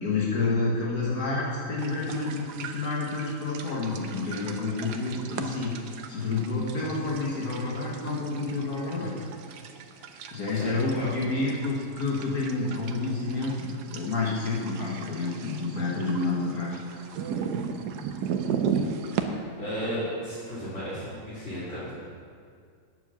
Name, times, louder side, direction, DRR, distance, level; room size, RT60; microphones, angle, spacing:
voice 1, 0.0-5.8 6.1-9.1 10.3-16.8, left 3 dB, 65° left, -5 dB, 1.9 m, -29 dB
sound 1, 1.8-19.2, right 6 dB, 80° right, 1.3 m, -36 dB
voice 2, 10.5-11.1 19.6-22.0, equal, 45° left, -12 dB, 3.0 m, -34 dB
9.2 x 7.2 x 6.9 m, 2.2 s
omnidirectional pair, 1.7 m